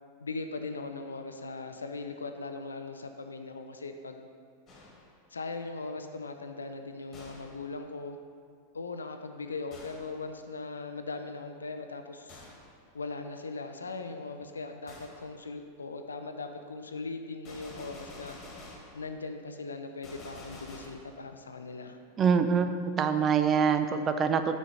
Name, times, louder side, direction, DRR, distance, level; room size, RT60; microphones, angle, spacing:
voice 1, 0.2-4.3 5.3-8.2 8.7-12.4 12.9-18.7 18.9-22.0, left 3 dB, 75° left, 7 dB, 0.4 m, -39 dB
Gunshot gunfire, 4.7-5.2 7.1-7.7 9.7-10.2 12.3-12.7 14.9-15.2 17.4-19.0 20.0-20.9, left 2 dB, 30° left, 1.7 m, -48 dB
voice 2, 22.2-24.5, right 6 dB, 25° right, 8 dB, 0.4 m, -25 dB
6.3 x 6.3 x 4.1 m, 2.1 s
figure-of-eight pair, 90°, 0 cm